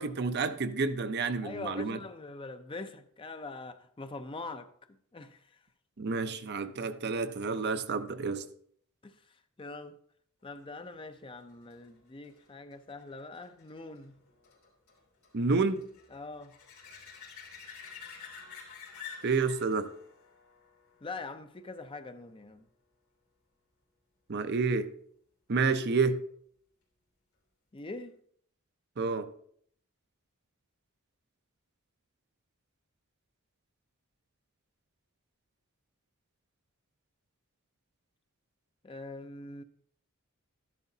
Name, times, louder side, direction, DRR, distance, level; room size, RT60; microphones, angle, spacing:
voice 1, 0.0-2.0 6.0-8.5 15.3-15.8 19.2-19.9 24.3-24.9 25.5-26.2 29.0-29.3, right 4 dB, 50° right, 0.6 m, -29 dB
voice 2, 1.4-4.7 5.1-5.4 9.0-9.1 9.6-10.0 10.4-14.2 16.1-16.6 21.0-22.7 27.7-28.1 38.8-39.6, left 3 dB, 25° left, 0.5 m, -43 dB
sound 1, 10.9-22.1 27.8-27.9, left 6 dB, 80° left, 3.0 m, -51 dB
12.0 x 10.5 x 2.7 m
head